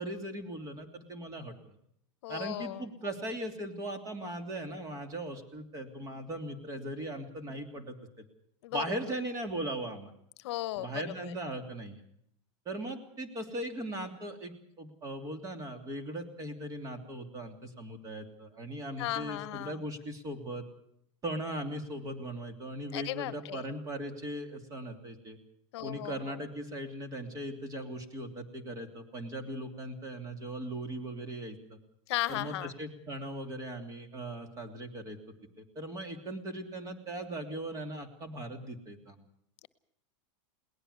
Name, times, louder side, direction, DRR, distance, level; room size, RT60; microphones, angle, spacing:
voice 1, 0.0-1.8 2.3-8.2 8.7-10.1 10.8-12.0 12.6-20.6 21.2-25.4 25.8-31.8 32.3-35.2 35.6-39.2, right 1 dB, 20° right, 7 dB, 3.0 m, -39 dB
voice 2, 2.2-2.9 8.6-8.9 10.4-11.4 19.0-19.8 22.9-23.6 25.7-26.4 32.1-32.7, left 16 dB, 65° left, 16 dB, 1.1 m, -36 dB
21.5 x 19.0 x 6.9 m, 0.71 s
supercardioid pair, 155°, 16 cm